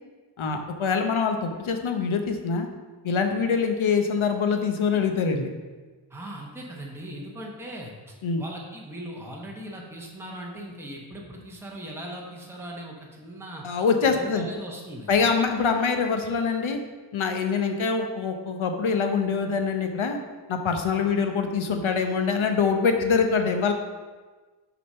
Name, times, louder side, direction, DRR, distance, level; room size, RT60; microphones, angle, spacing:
voice 1, 0.4-2.7 3.0-5.5 8.2-8.4 13.6-14.5 15.1-16.8 17.1-20.2 20.5-23.7, left 5 dB, 75° left, 5 dB, 1.0 m, -24 dB
voice 2, 6.1-13.6 14.1-15.1, right 1 dB, 5° right, -2 dB, 1.2 m, -39 dB
6.7 x 5.0 x 5.6 m, 1.3 s
wide cardioid pair, 135°, 48 cm